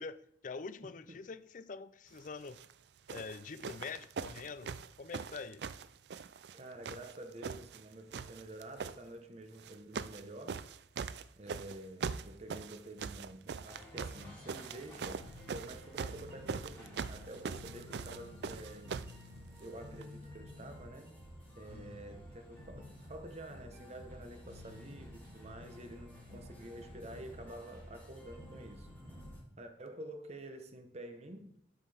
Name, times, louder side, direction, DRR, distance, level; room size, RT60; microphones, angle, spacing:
voice 1, 0.0-2.6 3.1-5.6 21.7-22.0, left 4 dB, 45° left, 0.5 m, -45 dB
voice 2, 0.8-1.2 6.5-10.7 11.4-19.0 19.6-21.3 21.6-28.9 29.6-31.6, right 1 dB, 40° right, 1.1 m, -49 dB
sound 1, 2.4-2.7 3.1-6.6 6.8-7.8 8.1-9.0 9.6-10.2 10.5-19.2 20.0-20.1, right 5 dB, 70° right, 0.4 m, -41 dB
sound 2, 13.6-29.4, left 1 dB, 10° left, 3.3 m, -52 dB
12.0 x 5.7 x 3.5 m
head